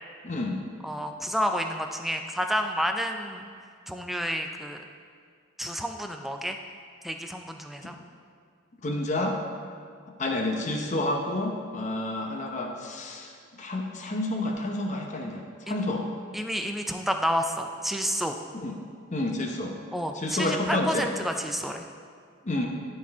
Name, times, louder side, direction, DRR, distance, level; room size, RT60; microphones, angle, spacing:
voice 1, 0.2-0.6 7.8-7.9 8.8-9.4 10.2-16.1 18.5-18.8 19.1-19.7 20.1-21.1 22.4-22.7, left 2 dB, 35° left, 2 dB, 0.8 m, -29 dB
voice 2, 0.8-3.5 3.9-4.8 5.6-6.6 7.0-8.0 15.7-15.8 16.3-18.4 19.9-21.8, equal, ahead, 4 dB, 0.3 m, -30 dB
11.5 x 4.3 x 3.5 m, 2.2 s
head